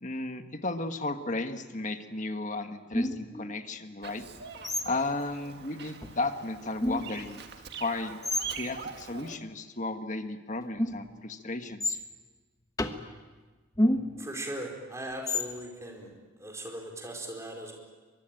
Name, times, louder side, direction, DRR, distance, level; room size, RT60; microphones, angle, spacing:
voice 1, 0.0-4.2 4.8-7.4 7.8-8.2 8.5-12.0, left 2 dB, 40° left, 7 dB, 1.5 m, -34 dB
sound 1, 2.9-3.5 4.6-5.1 6.0-6.1 6.8-7.3 8.2-8.5 10.8-11.2 11.8-12.0 12.8-13.1 13.8-14.3 15.3-15.6, left 1 dB, 20° left, 1.2 m, -29 dB
Bird vocalization bird call bird song, 4.0-9.4, right 6 dB, 55° right, 1.8 m, -43 dB
voice 2, 14.2-17.8, right 1 dB, 15° right, 1 dB, 4.4 m, -39 dB
23.5 x 23.0 x 9.0 m, 1.3 s
head